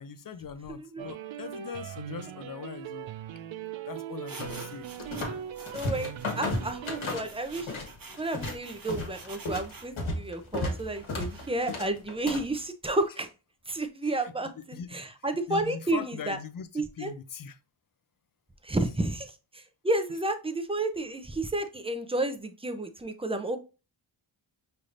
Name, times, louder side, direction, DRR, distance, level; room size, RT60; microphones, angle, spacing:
voice 1, 0.0-3.1 3.9-4.9 14.0-15.0 15.5-17.6, left 6 dB, 45° left, 0.5 m, -41 dB
voice 2, 0.7-1.1 5.7-7.8 8.2-13.3 13.7-16.4 16.7-17.1 18.6-23.6, right 2 dB, 10° right, 0.6 m, -31 dB
sound 1, 1.0-7.1, right 10 dB, 70° right, 0.5 m, -40 dB
sound 2, 4.3-9.9 10.7-11.5, right 3 dB, 45° right, 1.0 m, -48 dB
sound 3, 4.4-5.4 5.7-7.9 8.2-12.6, left 2 dB, 75° left, 1.4 m, -34 dB
5.5 x 3.3 x 2.5 m
wide cardioid pair, 90°, 48 cm